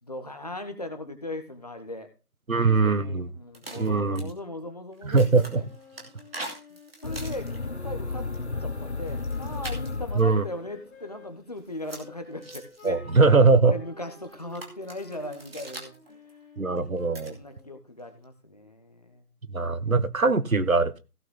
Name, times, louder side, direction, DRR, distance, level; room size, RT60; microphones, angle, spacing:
voice 1, 0.0-2.1 2.6-5.7 6.7-8.3 8.6-16.4 16.8-19.3, left 1 dB, 25° left, 7 dB, 1.3 m, -39 dB
voice 2, 2.5-3.3 3.8-4.2 5.0-5.6 10.2-10.4 12.8-13.7 16.6-17.3 19.5-21.0, right 4 dB, 60° right, 13 dB, 1.3 m, -21 dB
sound 1, 3.5-4.3 4.9-7.7 8.1-8.4 9.1-10.3 11.6-12.9 14.1-16.3 16.8-17.3 18.0-18.2, right 2 dB, 40° right, 2.6 m, -43 dB
Wind instrument woodwind instrument, 5.4-11.3 11.9-17.8, left 1 dB, 5° left, 3.2 m, -51 dB
sound 2, 7.0-10.8, left 3 dB, 45° left, 1.0 m, -33 dB
16.0 x 6.4 x 3.8 m, 0.30 s
figure-of-eight pair, 160°, 46 cm